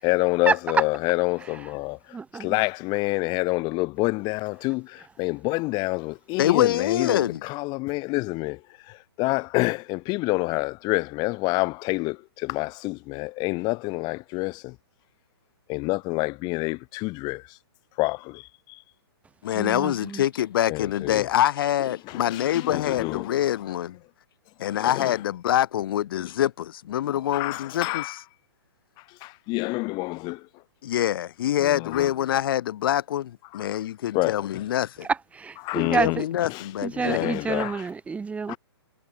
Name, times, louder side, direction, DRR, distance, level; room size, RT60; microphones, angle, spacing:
voice 1, 0.0-14.8 15.7-17.6 18.0-18.8 20.7-21.3 22.0-23.8 24.6-25.2 26.1-26.3 27.0-28.2 29.0-30.5 31.6-32.1 33.5-33.7 34.1-34.7 35.6-36.2 36.4-37.9 38.5-38.6, left 24 dB, 30° left, 5.7 m, -28 dB
voice 2, 2.1-2.6 19.5-20.2 35.0-36.3 36.8-38.6, right 5 dB, 10° right, 3.7 m, -28 dB
voice 3, 6.4-7.4 19.4-24.0 24.6-28.0 30.8-35.1 35.8-37.3, left 11 dB, 55° left, 7.5 m, -25 dB
hypercardioid pair, 135°, 14 cm